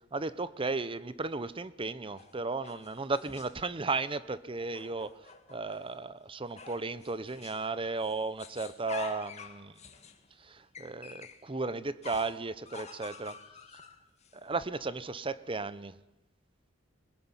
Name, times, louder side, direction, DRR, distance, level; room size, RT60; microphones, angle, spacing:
voice 1, 0.1-5.2 5.5-9.7 10.4-13.4 14.3-16.0, right 3 dB, 25° right, 16 dB, 0.8 m, -35 dB
sound 1, 2.2-3.7 4.6-5.9 6.6-7.7 8.0-11.4 12.0-14.4, left 5 dB, 35° left, 1.8 m, -48 dB
21.5 x 20.0 x 9.8 m, 0.96 s
head